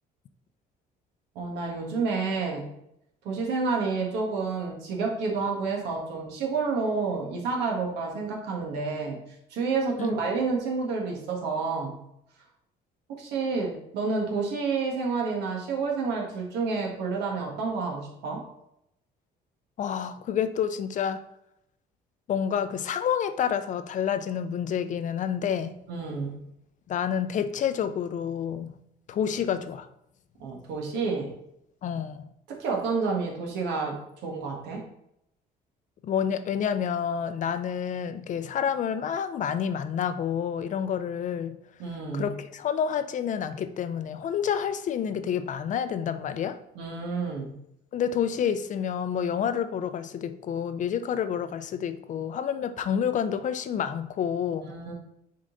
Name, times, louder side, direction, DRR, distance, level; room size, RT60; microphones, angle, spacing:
voice 1, 1.3-2.7 3.2-9.2 9.5-12.0 13.2-18.4 25.9-26.3 30.4-31.3 32.5-33.9 34.2-34.8 41.8-42.3 46.7-47.5 54.7-54.9, right 4 dB, 85° right, 0 dB, 1.6 m, -29 dB
voice 2, 19.8-21.2 22.3-25.8 26.9-28.7 29.1-29.9 31.8-32.3 36.0-41.6 42.1-46.6 47.9-54.8, left 8 dB, 50° left, 11 dB, 0.5 m, -29 dB
6.4 x 3.9 x 3.9 m, 0.79 s
cardioid pair, 110°, 17 cm